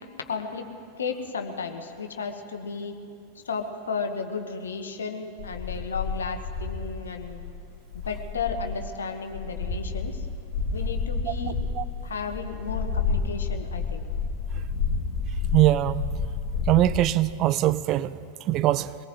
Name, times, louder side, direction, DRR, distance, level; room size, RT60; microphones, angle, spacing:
voice 1, 0.2-0.7 1.0-3.0 3.3-7.4 8.0-10.3 10.7-11.5 12.0-14.0, left 5 dB, 70° left, 1.2 m, -33 dB
sound 1, 5.4-8.9 9.3-17.0, left 4 dB, 50° left, 2.8 m, -30 dB
voice 2, 15.5-16.1 16.7-19.0, right 14 dB, 35° right, 0.4 m, -22 dB
23.0 x 19.0 x 3.1 m
figure-of-eight pair, 90°, 0 cm